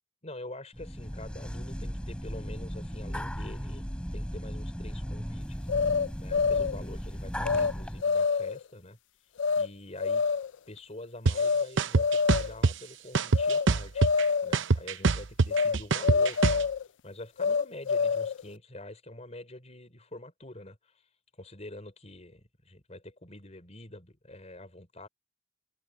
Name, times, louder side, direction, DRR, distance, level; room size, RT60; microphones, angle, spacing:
voice 1, 0.2-3.8 4.1-5.7 6.2-9.0 9.5-10.2 10.7-14.1 14.4-16.7 17.0-21.1 21.4-25.1, left 1 dB, 35° left, 4.1 m, -46 dB
sound 1, 0.7-8.0, equal, 5° left, 3.8 m, -36 dB
sound 2, 5.7-6.8 7.5-7.7 8.0-8.6 9.4-9.7 10.0-10.6 11.3-11.7 12.0-12.6 13.3-13.7 14.0-14.6 15.5-16.8 17.4-18.4, left 5 dB, 75° left, 0.5 m, -26 dB
sound 3, 11.3-11.4 11.8-12.7 13.1-14.2 14.5-16.6, right 4 dB, 80° right, 0.8 m, -23 dB
head